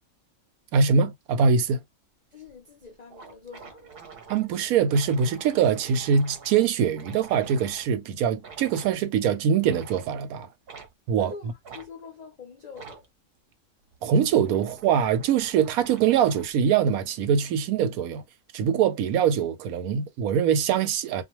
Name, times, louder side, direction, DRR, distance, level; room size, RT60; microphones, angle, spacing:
voice 1, 0.7-1.8 4.3-10.5 11.1-11.3 14.0-18.2 18.5-21.2, right 7 dB, 85° right, 1.0 m, -23 dB
voice 2, 2.3-4.0 11.2-13.1, left 5 dB, 60° left, 0.4 m, -45 dB
sound 1, 2.4-2.5 2.8-2.9 3.1-7.9 8.4-9.0 9.6-10.1 10.7-10.9 11.6-11.9 12.7-13.1 13.8-16.6, right 5 dB, 55° right, 0.8 m, -47 dB
2.4 x 2.2 x 2.9 m
omnidirectional pair, 1.5 m